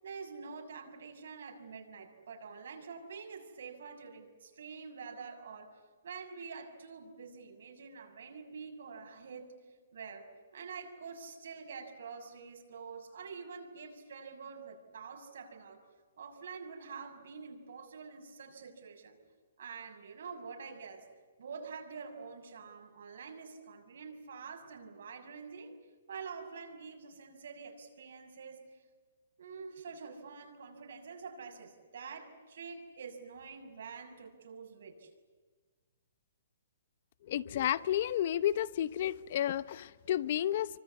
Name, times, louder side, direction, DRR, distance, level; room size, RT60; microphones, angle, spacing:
voice 1, 0.0-9.4 9.9-10.3 10.5-15.8 16.2-19.2 19.6-21.1 21.4-25.7 26.1-28.6 29.4-35.1, right 5 dB, 70° right, 6.5 m, -47 dB
voice 2, 37.2-40.8, left 11 dB, 50° left, 0.9 m, -31 dB
26.0 x 25.0 x 8.4 m
hypercardioid pair, 155°, 0 cm